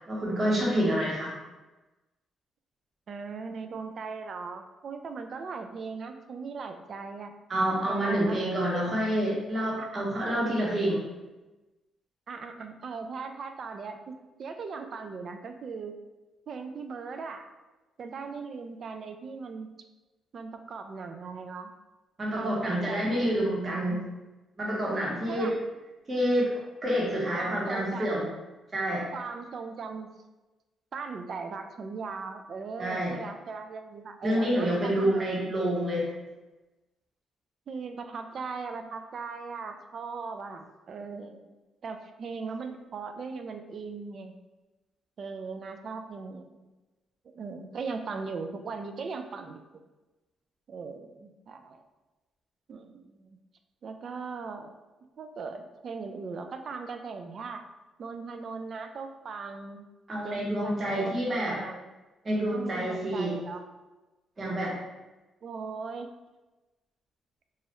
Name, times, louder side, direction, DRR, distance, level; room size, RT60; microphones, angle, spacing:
voice 1, 0.1-1.3 7.5-11.0 22.2-24.0 24.6-25.6 26.1-26.5 26.8-28.3 28.7-29.1 32.8-33.1 34.2-36.1 60.1-61.6 62.2-63.4 64.4-64.8, right 1 dB, 35° right, -4 dB, 1.0 m, -28 dB
voice 2, 3.1-7.3 7.9-8.8 9.8-10.2 12.3-16.0 16.5-17.5 18.0-19.7 20.3-21.7 22.3-23.0 25.3-25.6 27.3-28.2 29.1-30.1 30.9-35.2 37.7-41.4 41.8-44.3 45.2-46.7 47.3-49.6 50.7-51.8 52.7-53.4 53.8-54.7 55.2-57.6 58.0-59.8 60.2-61.9 62.5-63.6 65.4-66.1, right 4 dB, 55° right, 6 dB, 0.3 m, -39 dB
3.0 x 2.3 x 2.9 m, 1.1 s
cardioid pair, 90°, 0 cm